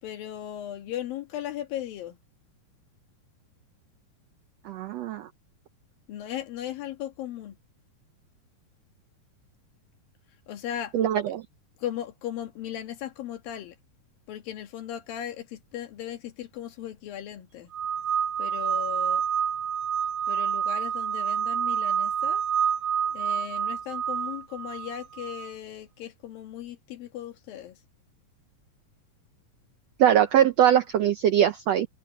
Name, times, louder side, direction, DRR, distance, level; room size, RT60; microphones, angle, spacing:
voice 1, 0.0-2.2 6.1-7.6 10.5-11.0 11.8-13.8 14.3-17.7 18.4-19.2 20.3-22.4 23.0-27.8, left 11 dB, 90° left, 3.6 m, -37 dB
voice 2, 4.6-5.3 10.9-11.4 30.0-31.9, right 10 dB, 85° right, 1.5 m, -22 dB
sound 1, 17.7-25.5, right 8 dB, 45° right, 3.1 m, -28 dB
omnidirectional pair, 4.0 m